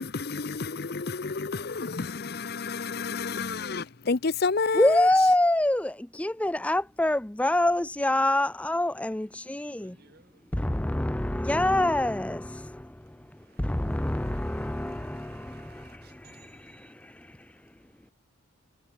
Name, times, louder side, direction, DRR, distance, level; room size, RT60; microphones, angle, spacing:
voice 1, 0.0-5.1, left 4 dB, 50° left, 0.7 m, -30 dB
voice 2, 4.7-10.0 10.5-17.6, left 1 dB, 5° left, 0.4 m, -26 dB
voice 3, 9.6-10.5 12.8-18.1, right 6 dB, 50° right, 2.8 m, -60 dB
head